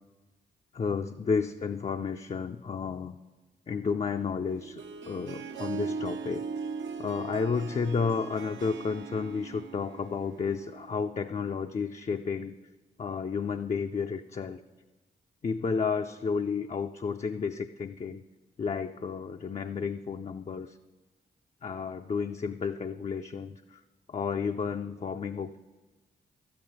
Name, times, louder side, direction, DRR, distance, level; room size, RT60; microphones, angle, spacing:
voice 1, 0.7-3.2 3.7-6.5 7.0-12.5 13.0-14.6 15.4-18.2 18.6-20.8 21.6-23.8 24.1-25.6, left 5 dB, 35° left, 6 dB, 0.4 m, -32 dB
Harp, 4.5-11.0, right 5 dB, 70° right, 0.7 m, -39 dB
12.5 x 8.7 x 4.1 m, 1.2 s
supercardioid pair, 40°, 20 cm